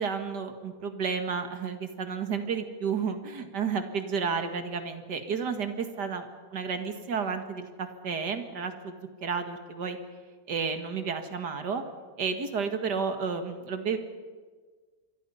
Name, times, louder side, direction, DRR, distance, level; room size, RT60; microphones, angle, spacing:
voice 1, 0.0-6.3 6.5-8.9 9.2-10.0 10.5-11.8 12.2-14.0, right 5 dB, 85° right, 7 dB, 2.4 m, -31 dB
27.0 x 23.0 x 5.6 m, 1.5 s
omnidirectional pair, 1.7 m